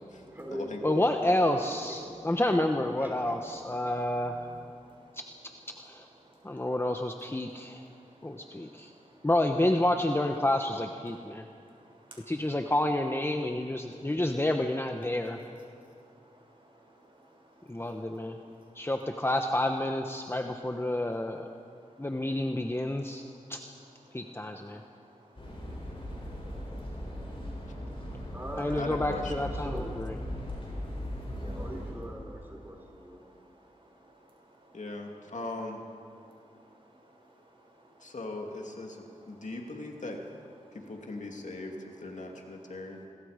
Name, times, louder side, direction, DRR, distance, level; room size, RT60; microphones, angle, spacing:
voice 1, 0.3-2.6 3.0-3.5 28.3-28.8 29.5-30.0 31.6-33.3, equal, 15° right, 0 dB, 5.5 m, -41 dB
voice 2, 0.8-4.5 5.9-6.0 6.4-7.8 8.2-8.9 9.2-11.4 12.3-15.4 17.7-18.4 18.8-21.4 22.0-23.2 23.5-23.6 24.1-24.8 28.6-30.1, left 1 dB, 20° left, 4 dB, 1.1 m, -29 dB
voice 3, 3.8-5.2 5.7-6.7 7.4-9.3 11.1-12.3 13.8-14.1 15.7-18.9 21.9-22.3 22.9-23.5 24.1-28.3 30.4-31.7 33.2-34.8 36.2-38.2 39.4-39.5 40.7-40.8, right 1 dB, 40° right, -1 dB, 6.5 m, -58 dB
sound 1, 25.4-31.9, equal, 40° left, 7.7 m, -38 dB
voice 4, 28.8-29.7 34.7-35.8 38.0-40.2 40.7-43.0, left 2 dB, 65° left, 1 dB, 2.6 m, -39 dB
27.0 x 21.5 x 5.1 m, 2.5 s
wide cardioid pair, 70°, 13 cm